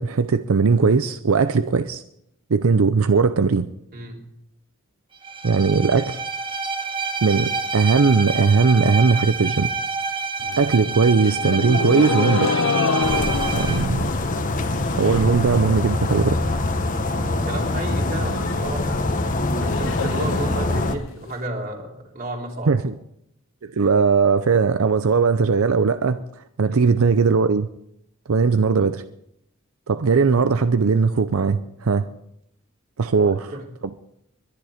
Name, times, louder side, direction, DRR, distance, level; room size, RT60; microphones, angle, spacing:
voice 1, 0.0-2.0 2.5-3.7 5.4-6.2 7.2-9.7 10.6-12.6 13.5-14.1 14.9-16.4 22.7-22.9 23.6-26.2 26.6-27.7 28.3-29.0 29.9-32.1 33.0-33.5, right 4 dB, 90° right, 12 dB, 0.6 m, -19 dB
voice 2, 3.9-4.2 13.4-13.7 16.9-19.0 19.6-22.8 26.6-26.9 33.2-33.6, right 1 dB, 45° right, 0 dB, 3.4 m, -33 dB
Bowed string instrument, 5.2-13.9, right 4 dB, 25° right, 1.1 m, -28 dB
sound 1, 10.4-15.4 15.7-16.2 16.6-16.7 16.9-17.0 17.3-21.3, left 4 dB, 75° left, 0.7 m, -28 dB
sound 2, 13.0-21.0, left 2 dB, 40° left, 1.2 m, -24 dB
21.5 x 10.5 x 5.0 m, 0.77 s
head